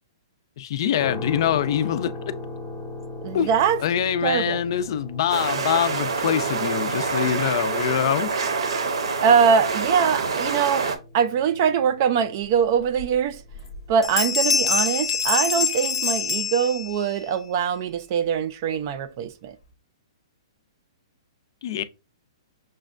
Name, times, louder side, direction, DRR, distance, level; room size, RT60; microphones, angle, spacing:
voice 1, 0.6-2.1 3.3-3.5 3.8-8.3 21.6-21.8, left 10 dB, 50° left, 0.4 m, -24 dB
sound 1, 1.0-15.0, left 2 dB, 10° left, 0.6 m, -39 dB
voice 2, 3.2-3.8 4.2-4.6 9.2-13.4 13.9-19.6, right 7 dB, 40° right, 0.4 m, -22 dB
sound 2, 5.3-11.0, right 4 dB, 75° right, 0.7 m, -26 dB
sound 3, 13.0-13.1 13.5-13.8 14.0-17.2, left 6 dB, 80° left, 0.7 m, -24 dB
6.2 x 2.2 x 2.5 m
hypercardioid pair, 155°, 3 cm